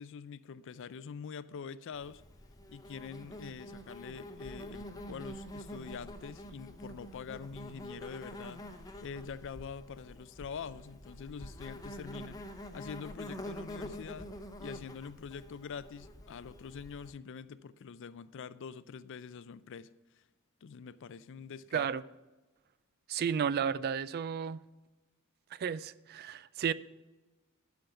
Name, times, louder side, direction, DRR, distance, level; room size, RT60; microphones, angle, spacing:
voice 1, 0.0-2.2 2.7-8.6 9.0-12.4 12.7-14.3 14.6-19.9 20.6-21.9, left 6 dB, 60° left, 0.4 m, -45 dB
Insect, 1.9-17.1, equal, 15° left, 0.8 m, -46 dB
voice 2, 21.7-22.0 23.1-24.6 25.5-26.7, right 7 dB, 45° right, 0.3 m, -32 dB
11.5 x 5.2 x 5.7 m
head